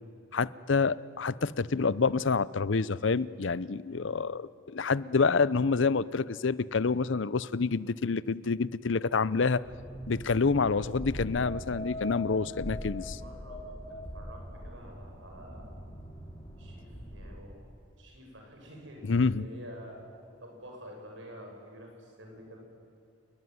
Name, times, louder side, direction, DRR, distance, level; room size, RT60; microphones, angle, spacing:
voice 1, 0.3-9.6 10.1-13.2 19.0-19.4, left 4 dB, 70° left, 19 dB, 0.6 m, -27 dB
voice 2, 9.2-10.0 12.7-15.7 16.6-17.6 18.0-20.0 20.4-22.6, equal, 70° right, 1 dB, 7.6 m, -49 dB
sound 1, 9.6-17.4, left 1 dB, 25° left, 5.3 m, -41 dB
29.5 x 21.0 x 9.6 m, 2.4 s
head